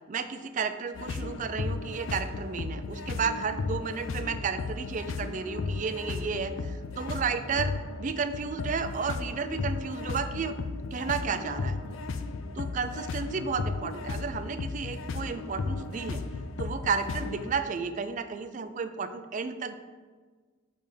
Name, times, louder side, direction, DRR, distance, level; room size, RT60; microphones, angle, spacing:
voice 1, 0.1-11.8 12.6-16.2 16.6-19.7, right 5 dB, 35° right, 10 dB, 0.3 m, -32 dB
sound 1, 0.9-17.5, left 3 dB, 65° left, 0.4 m, -35 dB
6.3 x 3.4 x 5.1 m, 1.5 s
head